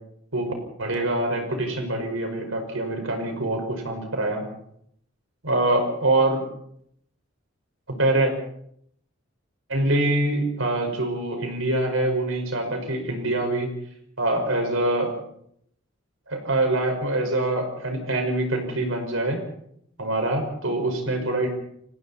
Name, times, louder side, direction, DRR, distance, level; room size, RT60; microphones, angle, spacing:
voice 1, 0.8-4.4 5.4-6.4 7.9-8.3 9.7-13.7 14.2-15.1 16.3-19.4 20.0-21.5, right 2 dB, 90° right, 4 dB, 5.5 m, -24 dB
30.0 x 20.0 x 4.3 m, 0.71 s
head